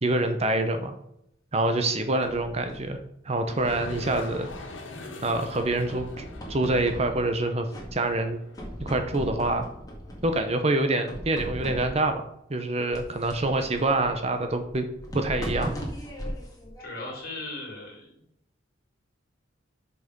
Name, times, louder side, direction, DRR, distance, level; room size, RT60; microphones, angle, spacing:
voice 1, 0.0-0.9 1.5-3.0 3.2-4.5 5.2-8.4 8.8-9.7 10.2-12.2 12.5-14.9 15.1-15.7, right 2 dB, 35° right, 7 dB, 0.7 m, -26 dB
sound 1, 1.7-3.0 3.5-4.8 5.2-7.4 7.7-8.3 8.5-10.5 11.1-12.2 12.9-17.4, equal, 20° left, 1.9 m, -38 dB
sound 2, 3.4-9.1, left 2 dB, 90° left, 1.6 m, -43 dB
voice 2, 16.8-18.1, left 2 dB, 50° left, 0 dB, 2.9 m, -37 dB
6.5 x 5.6 x 5.2 m, 0.77 s
head